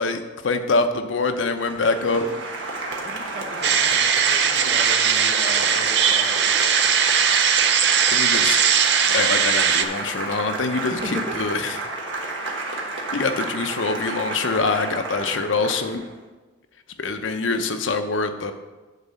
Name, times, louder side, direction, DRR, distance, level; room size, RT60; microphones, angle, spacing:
voice 1, 0.0-2.2 8.1-8.6 9.0-11.8 13.1-16.0 17.0-18.5, left 3 dB, 90° left, 8 dB, 0.7 m, -24 dB
Applause, 1.3-16.1, right 2 dB, 85° right, 1.3 m, -31 dB
voice 2, 3.0-6.5 10.9-11.4 12.7-12.9, right 1 dB, 40° right, 3 dB, 1.1 m, -37 dB
sound 1, 3.6-9.8, right 7 dB, 60° right, 0.6 m, -19 dB
9.2 x 4.1 x 6.8 m, 1.2 s
head